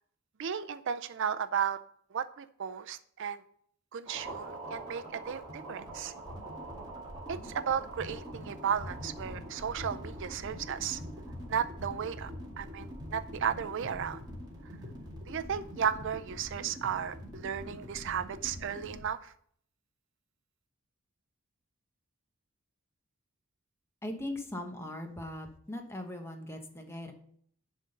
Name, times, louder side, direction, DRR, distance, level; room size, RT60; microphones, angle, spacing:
voice 1, 0.4-1.8 2.1-3.4 3.9-6.1 7.3-11.0 11.5-12.3 12.6-14.2 15.3-19.3, right 8 dB, 60° right, 11 dB, 0.4 m, -34 dB
sound 1, 4.1-19.0, equal, 20° right, 2.1 m, -44 dB
voice 2, 24.0-27.1, left 1 dB, 10° left, 5 dB, 1.0 m, -39 dB
10.5 x 3.8 x 6.5 m, 0.63 s
head